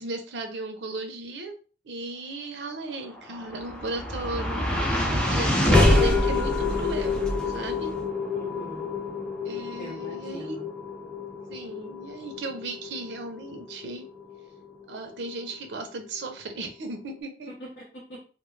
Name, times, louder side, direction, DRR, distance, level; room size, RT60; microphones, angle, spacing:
voice 1, 0.0-1.6 1.8-7.9 9.4-10.6 11.5-14.1 14.9-17.5, right 2 dB, 80° right, 5 dB, 0.5 m, -36 dB
sound 1, 3.2-15.5, left 2 dB, 5° left, 0.4 m, -27 dB
voice 2, 8.3-8.9 9.7-10.7 17.5-18.2, equal, 65° left, -6 dB, 0.8 m, -42 dB
2.2 x 2.0 x 3.1 m, 0.38 s
head